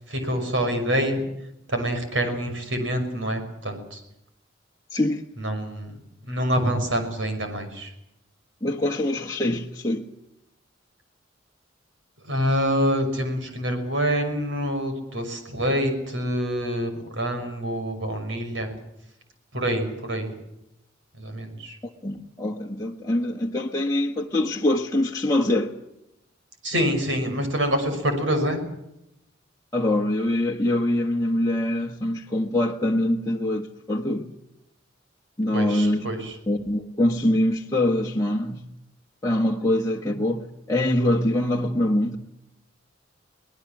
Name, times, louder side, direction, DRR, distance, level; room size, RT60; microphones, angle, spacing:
voice 1, 0.1-1.2 1.7-4.0 5.4-5.9 6.3-7.9 12.3-18.7 19.5-20.3 21.2-21.8 26.6-28.6 35.5-36.3, equal, 75° right, 6.0 m, -26 dB
voice 2, 4.9-5.2 8.6-10.1 21.8-25.7 29.7-34.3 35.4-36.0 36.5-38.7 39.2-42.2, left 1 dB, 15° left, 1.5 m, -24 dB
24.0 x 19.5 x 7.4 m
head